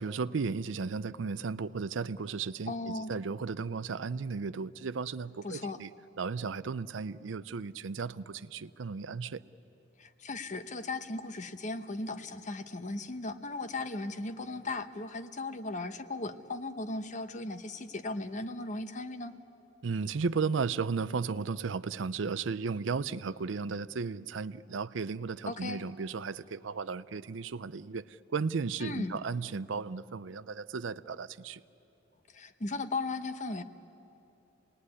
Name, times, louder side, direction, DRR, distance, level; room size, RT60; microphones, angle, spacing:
voice 1, 0.0-5.9 6.2-9.4 19.8-31.6, right 5 dB, 75° right, 16 dB, 0.5 m, -35 dB
voice 2, 2.7-3.1 5.4-5.8 10.0-19.3 25.5-25.8 28.8-29.2 32.3-33.6, left 2 dB, 40° left, 10 dB, 0.9 m, -37 dB
27.5 x 19.5 x 9.7 m, 2.8 s
head